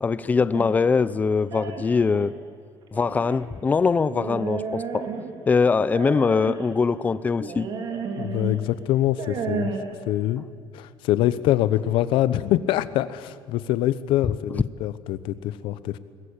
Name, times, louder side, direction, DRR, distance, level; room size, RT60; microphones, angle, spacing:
voice 1, 0.0-2.3 2.9-5.1 5.5-7.7, left 5 dB, 20° left, 16 dB, 0.5 m, -22 dB
sound 1, 0.5-2.3 2.9-3.4 4.1-5.5 5.9-6.7 7.4-8.6 9.0-9.8, right 5 dB, 50° right, 3.1 m, -32 dB
voice 2, 8.2-9.7 10.0-10.4 10.7-16.0, left 13 dB, 80° left, 15 dB, 1.0 m, -24 dB
22.5 x 19.5 x 8.8 m, 2.1 s
cardioid pair, 165°, 9 cm